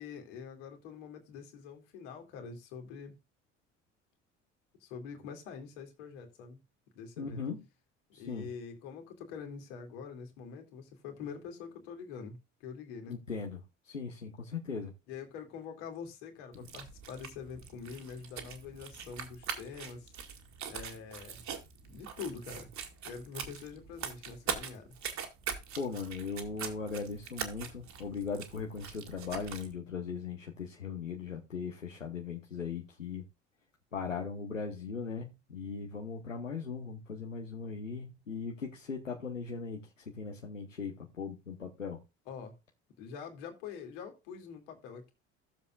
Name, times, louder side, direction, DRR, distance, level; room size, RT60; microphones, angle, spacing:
voice 1, 0.0-3.2 4.8-6.6 6.9-7.4 8.1-13.2 15.1-20.1 20.7-21.4 21.9-22.7 23.0-24.9 42.3-42.5 43.0-45.1, left 6 dB, 65° left, 2.6 m, -45 dB
voice 2, 7.2-7.6 8.1-8.5 13.1-14.9 25.8-33.2 33.9-42.0, left 5 dB, 90° left, 1.2 m, -39 dB
sound 1, 16.5-29.7, right 7 dB, 50° right, 2.4 m, -42 dB
15.5 x 7.3 x 2.4 m
figure-of-eight pair, 55°, 37 cm